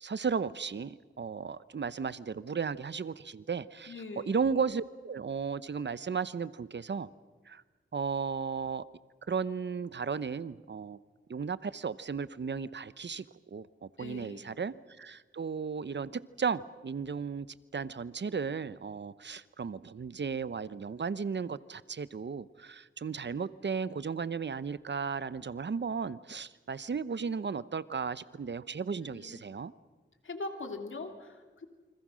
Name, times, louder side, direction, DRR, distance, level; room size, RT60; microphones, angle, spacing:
voice 1, 0.0-7.1 7.5-7.6 7.9-8.8 9.3-11.0 11.3-13.2 13.5-17.5 17.7-29.7, right 5 dB, 65° right, 16 dB, 0.9 m, -35 dB
voice 2, 3.9-4.4 14.0-14.5 29.0-29.4 30.2-31.7, left 3 dB, 75° left, 5 dB, 3.0 m, -42 dB
28.5 x 25.5 x 6.3 m, 1.3 s
wide cardioid pair, 75°, 20 cm